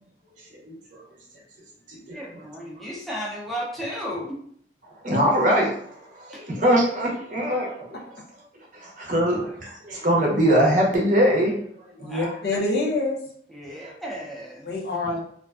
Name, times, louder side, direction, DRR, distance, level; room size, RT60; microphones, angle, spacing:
voice 1, 2.1-4.3 6.3-6.4 12.1-12.3 13.5-14.7, equal, ahead, -4 dB, 0.4 m, -34 dB
voice 2, 5.0-8.0 8.8-11.6 12.0-12.1 13.8-13.9, equal, 45° right, -2 dB, 0.6 m, -22 dB
voice 3, 12.0-13.2 14.6-15.2, left 2 dB, 60° left, -3 dB, 0.6 m, -26 dB
2.4 x 2.2 x 2.3 m, 0.63 s
head